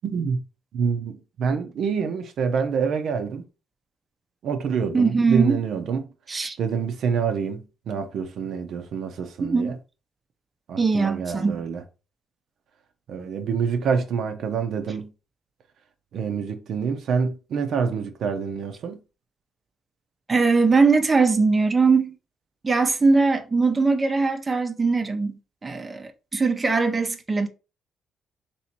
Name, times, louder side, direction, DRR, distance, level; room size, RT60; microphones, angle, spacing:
voice 1, 0.0-0.4 0.7-3.4 4.4-6.0 6.6-9.7 10.7-11.8 13.1-15.1 16.1-19.0, right 6 dB, 70° right, 0.6 m, -26 dB
voice 2, 4.9-5.6 6.3-6.6 9.4-9.8 10.8-11.6 20.3-22.2 22.6-27.5, right 4 dB, 25° right, 0.6 m, -21 dB
3.1 x 2.8 x 4.3 m
cardioid pair, 90°, 0 cm